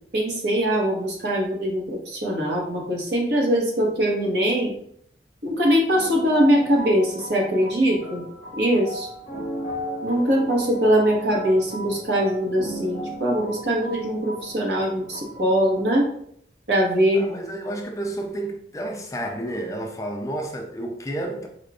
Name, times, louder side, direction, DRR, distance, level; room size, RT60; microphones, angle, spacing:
voice 1, 0.1-4.7 5.4-8.2 8.6-9.1 10.0-16.1 16.7-17.2, equal, 80° right, 1.1 m, -22 dB
sound 1, 5.9-16.0, equal, 35° left, 1.2 m, -36 dB
voice 2, 17.1-21.5, right 1 dB, 20° left, 0.3 m, -31 dB
5.0 x 2.4 x 2.3 m
head